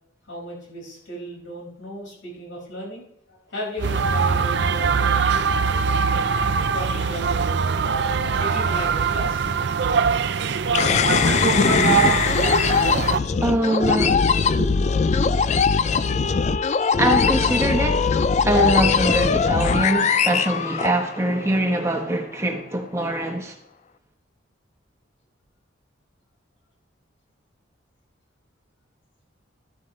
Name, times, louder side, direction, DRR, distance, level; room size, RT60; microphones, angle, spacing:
voice 1, 0.3-5.2 6.7-9.5 14.6-14.7, equal, 85° left, 5.4 m, -35 dB
sound 1, 3.8-13.2, right 5 dB, 60° right, 0.5 m, -22 dB
sound 2, 10.7-21.4, left 5 dB, 35° left, 0.3 m, -20 dB
voice 2, 13.4-14.2 17.0-18.1 18.4-23.5, right 1 dB, 15° right, 1.1 m, -23 dB
13.5 x 11.0 x 3.2 m
head